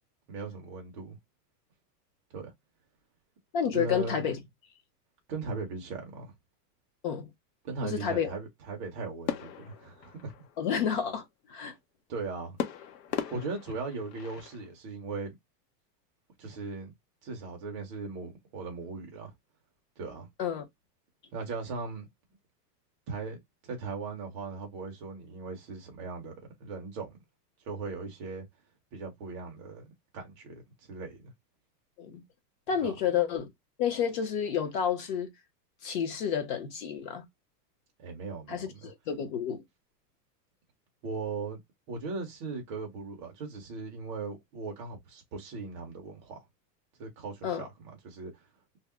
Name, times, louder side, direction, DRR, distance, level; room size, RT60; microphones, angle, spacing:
voice 1, 0.3-1.2 2.3-2.5 3.7-4.3 5.3-6.3 7.6-10.3 12.1-12.6 13.3-15.4 16.4-16.9 17.2-19.3 20.0-20.3 21.3-22.1 23.1-23.4 23.6-26.3 26.6-27.2 27.6-28.4 28.9-31.3 32.7-32.9 38.0-38.8 41.0-41.6 41.9-46.4 47.0-48.4, right 4 dB, 20° right, 0.5 m, -38 dB
voice 2, 3.5-4.4 7.0-7.3 7.8-8.3 10.6-11.2 11.5-11.8 20.4-20.7 32.0-32.2 32.7-33.5 33.8-35.3 35.8-37.2 38.5-39.6 47.4-47.7, left 8 dB, 30° left, 0.5 m, -30 dB
sound 1, 9.3-10.8 12.6-14.7, left 10 dB, 80° left, 0.9 m, -38 dB
2.7 x 2.0 x 3.4 m
supercardioid pair, 175°, 48 cm